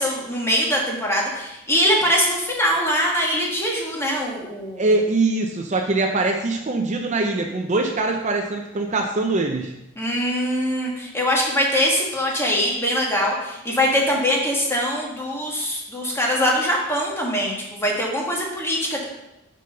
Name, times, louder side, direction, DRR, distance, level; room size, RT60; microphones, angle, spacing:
voice 1, 0.0-4.9 10.0-19.1, equal, 10° left, -2 dB, 1.6 m, -22 dB
voice 2, 4.8-9.7, right 2 dB, 35° right, 3 dB, 0.6 m, -22 dB
6.5 x 5.4 x 5.5 m, 0.91 s
head